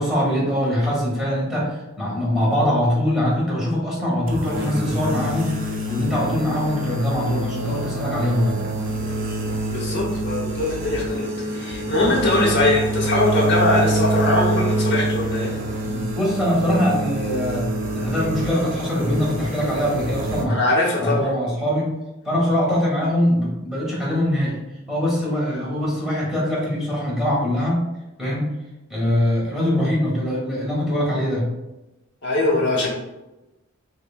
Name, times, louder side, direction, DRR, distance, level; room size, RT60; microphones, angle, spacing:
voice 1, 0.0-5.5 5.9-8.6 15.8-20.6 21.0-21.9 22.2-24.6 24.9-27.9 28.2-28.5 28.9-31.5 32.5-32.6, equal, ahead, -6 dB, 1.3 m, -22 dB
sound 1, 4.3-20.4, right 1 dB, 45° right, 0.6 m, -26 dB
voice 2, 9.7-11.2 11.5-15.6 20.5-21.4 32.2-32.9, left 2 dB, 60° left, -3 dB, 1.0 m, -21 dB
6.2 x 2.2 x 2.4 m, 0.99 s
head